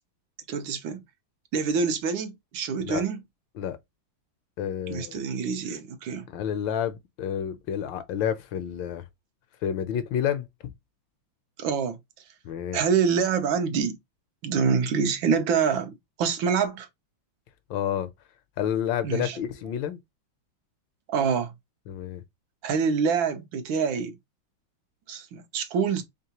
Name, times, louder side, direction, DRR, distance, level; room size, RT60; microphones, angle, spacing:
voice 1, 0.5-1.0 1.5-3.2 4.9-6.3 11.6-12.0 12.7-14.0 14.4-15.9 16.2-16.9 19.0-19.4 21.1-21.5 22.6-24.1 25.1-26.0, right 6 dB, 75° right, 1.5 m, -26 dB
voice 2, 4.6-5.2 6.3-9.0 9.6-10.7 12.4-12.8 17.7-18.1 18.6-20.0 21.9-22.2, left 9 dB, 75° left, 1.3 m, -29 dB
3.8 x 3.5 x 2.8 m
omnidirectional pair, 2.2 m